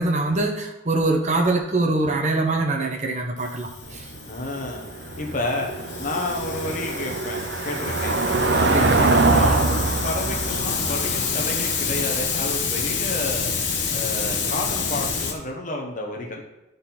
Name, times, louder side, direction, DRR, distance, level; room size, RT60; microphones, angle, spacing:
voice 1, 0.0-4.0 8.7-9.0, right 2 dB, 35° right, 3 dB, 0.9 m, -23 dB
Hiss, 3.4-15.3, left 5 dB, 65° left, 1.1 m, -28 dB
Car passing by / Engine, 3.8-14.5, right 3 dB, 60° right, 0.7 m, -24 dB
voice 2, 4.3-5.7 6.0-8.2 8.5-13.5 13.9-16.4, left 2 dB, 40° left, 1 dB, 1.1 m, -30 dB
12.0 x 4.0 x 4.3 m, 0.96 s
head